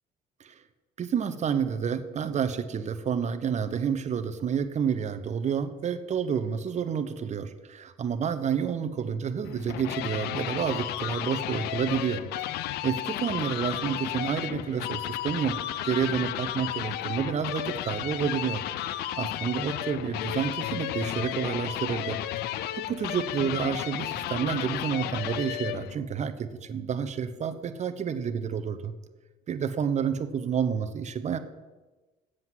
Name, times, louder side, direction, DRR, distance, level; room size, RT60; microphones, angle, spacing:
voice 1, 1.0-12.3 12.8-15.6 15.8-18.7 19.2-22.2 22.5-22.6 22.9-28.9 29.5-31.4, right 7 dB, 45° right, 11 dB, 0.9 m, -29 dB
sound 1, 9.4-26.0, left 13 dB, 75° left, 0.5 m, -33 dB
7.8 x 7.8 x 7.6 m, 1.2 s
supercardioid pair, 75°, 17 cm